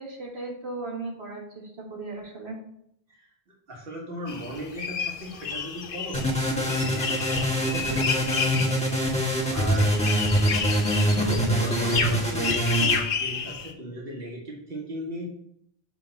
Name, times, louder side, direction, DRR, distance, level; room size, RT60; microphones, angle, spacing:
voice 1, 0.0-2.6, right 3 dB, 90° right, -2 dB, 2.0 m, -36 dB
voice 2, 3.7-9.0 9.5-9.9 11.0-12.9 13.2-15.3, equal, 65° right, -2 dB, 1.8 m, -37 dB
sound 1, 4.3-13.7, left 6 dB, 60° left, 1.0 m, -31 dB
sound 2, 6.1-13.0, equal, 5° left, 1.4 m, -24 dB
7.0 x 3.8 x 6.4 m, 0.72 s
omnidirectional pair, 1.1 m